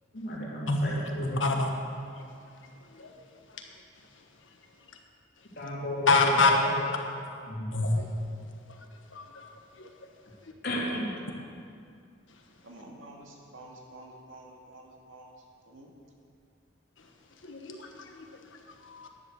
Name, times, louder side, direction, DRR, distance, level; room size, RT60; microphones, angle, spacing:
voice 1, 0.1-1.5 5.6-6.8 7.5-7.7 10.6-11.1, equal, 55° left, -5 dB, 3.1 m, -33 dB
voice 2, 6.1-6.5 7.7-8.0 9.1-9.3 9.8-9.9 17.4-17.8 18.2-18.3 18.9-19.1, left 3 dB, 75° left, 3 dB, 1.5 m, -25 dB
voice 3, 12.6-15.3 15.7-15.9, right 1 dB, 85° right, -1 dB, 2.1 m, -49 dB
10.5 x 10.5 x 6.5 m, 2.4 s
head